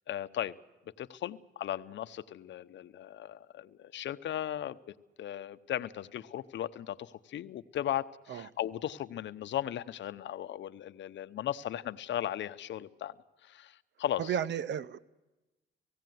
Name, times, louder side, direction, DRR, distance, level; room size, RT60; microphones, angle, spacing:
voice 1, 0.1-0.5 1.0-4.8 5.2-13.1 13.4-14.3, left 11 dB, 70° left, 0.8 m, -37 dB
voice 2, 14.2-15.0, right 8 dB, 65° right, 0.8 m, -33 dB
18.5 x 16.5 x 9.3 m
cardioid pair, 90°, 20 cm